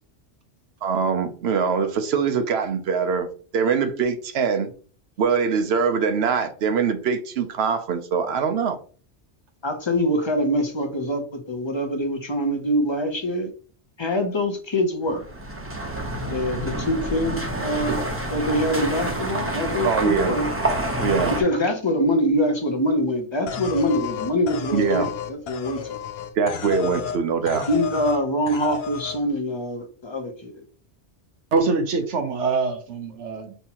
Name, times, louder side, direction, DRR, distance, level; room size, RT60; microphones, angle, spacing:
voice 1, 0.8-3.3 3.5-4.7 5.2-8.8 19.8-20.4 21.0-21.4 24.7-25.1 26.4-27.7, right 5 dB, 70° right, 8 dB, 0.8 m, -23 dB
voice 2, 9.6-13.5 14.0-15.2 16.3-20.5 21.3-26.0 27.7-30.6, equal, 30° left, 5 dB, 0.6 m, -24 dB
sound 1, 15.1-21.4, right 1 dB, 15° right, 0.7 m, -28 dB
sound 2, 23.5-27.2 27.5-28.2 28.5-29.2, left 7 dB, 70° left, 0.8 m, -32 dB
voice 3, 31.5-33.5, right 4 dB, 90° right, 6 dB, 1.1 m, -24 dB
5.5 x 2.8 x 2.9 m, 0.42 s
omnidirectional pair, 1.2 m